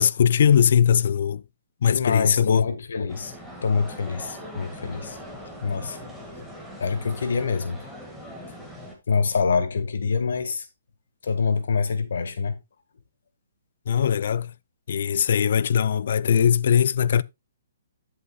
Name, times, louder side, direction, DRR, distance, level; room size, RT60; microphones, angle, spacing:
voice 1, 0.0-1.4 1.8-2.7 13.9-14.5 14.9-17.2, left 8 dB, 60° left, 0.5 m, -20 dB
voice 2, 1.8-5.2 5.6-6.0 6.4-6.5 6.8-7.9 9.1-10.7 11.2-12.6, left 5 dB, 75° left, 1.6 m, -26 dB
sound 1, 3.1-9.0, equal, ahead, 1.9 m, -41 dB
11.5 x 7.8 x 2.3 m
hypercardioid pair, 155°, 0 cm